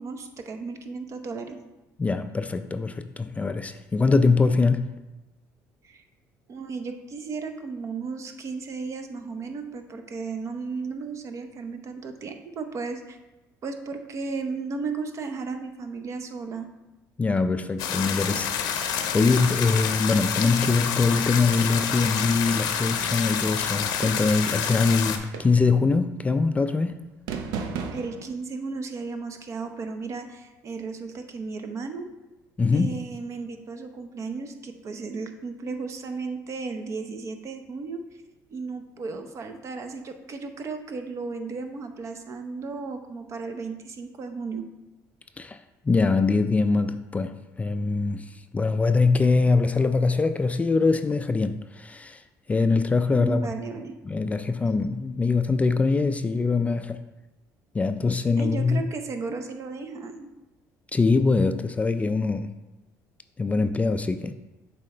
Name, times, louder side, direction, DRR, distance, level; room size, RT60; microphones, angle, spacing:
voice 1, 0.0-1.6 5.8-6.0 6.5-13.2 13.6-16.7 27.9-32.1 32.7-38.0 38.5-44.6 53.1-53.9 58.4-60.3, right 4 dB, 45° right, 0.7 m, -34 dB
voice 2, 2.0-4.9 17.2-27.0 32.6-33.0 45.4-45.6 45.9-52.2 52.5-53.5 54.1-57.0 57.7-58.9 60.9-62.5 63.4-64.3, left 4 dB, 20° left, 0.3 m, -23 dB
sound 1, 17.8-25.2, left 8 dB, 75° left, 0.7 m, -28 dB
sound 2, 24.0-24.5 25.3-25.8 27.3-28.3, right 5 dB, 80° right, 0.5 m, -34 dB
7.5 x 4.2 x 3.3 m
cardioid pair, 95°, 7 cm